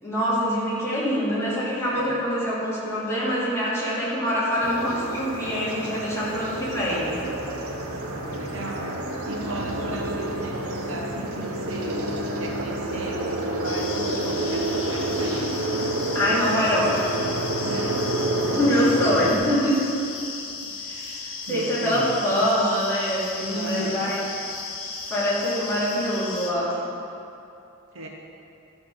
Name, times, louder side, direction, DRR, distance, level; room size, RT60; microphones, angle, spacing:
voice 1, 0.0-7.2 16.1-17.3 18.6-19.9 20.8-24.2 25.1-26.8, equal, 15° left, -9 dB, 2.7 m, -24 dB
voice 2, 1.9-2.2 8.1-9.0 9.3-12.0 12.4-15.7 17.6-18.0 18.4-18.7 20.7-22.4 23.5-24.1 27.9-28.1, right 2 dB, 60° right, 0 dB, 1.1 m, -36 dB
sound 1, 4.6-19.3, right 1 dB, 90° right, 1.1 m, -29 dB
sound 2, 13.6-26.5, left 4 dB, 65° left, 1.2 m, -35 dB
11.5 x 5.9 x 6.2 m, 2.7 s
head